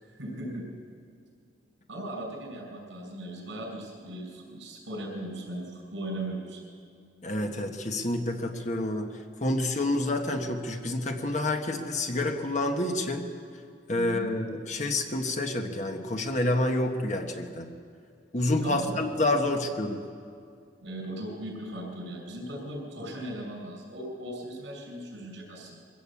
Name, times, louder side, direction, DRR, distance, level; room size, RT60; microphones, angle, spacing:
voice 1, 0.0-0.7 1.9-6.6 14.0-14.3 18.6-19.0 20.8-25.8, right 1 dB, 80° right, 1 dB, 6.0 m, -38 dB
voice 2, 7.2-9.1 9.4-13.3 13.9-17.7 18.3-20.0, left 1 dB, 40° left, 4 dB, 1.4 m, -28 dB
23.0 x 15.5 x 8.5 m, 2.3 s
head